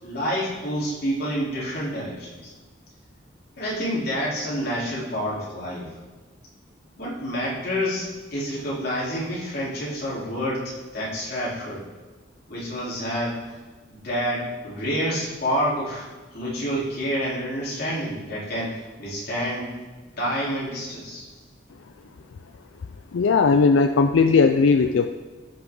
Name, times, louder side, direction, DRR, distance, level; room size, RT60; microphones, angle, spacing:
voice 1, 0.0-2.5 3.6-5.9 7.0-11.9 12.5-13.5 13.9-19.7 20.2-21.3, equal, 55° left, -7 dB, 3.7 m, -28 dB
voice 2, 23.1-25.1, left 4 dB, 90° left, 7 dB, 0.4 m, -18 dB
15.5 x 5.9 x 3.8 m, 1.3 s
head